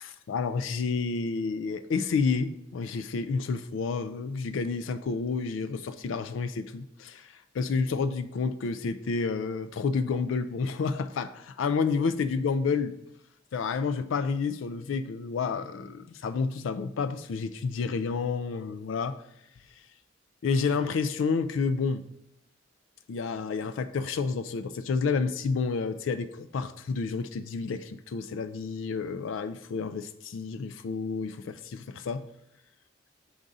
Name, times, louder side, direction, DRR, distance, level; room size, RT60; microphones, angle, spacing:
voice 1, 0.0-13.0 13.5-19.2 20.4-22.0 23.1-32.2, left 5 dB, 85° left, 12 dB, 0.4 m, -30 dB
7.8 x 3.6 x 4.0 m, 0.80 s
head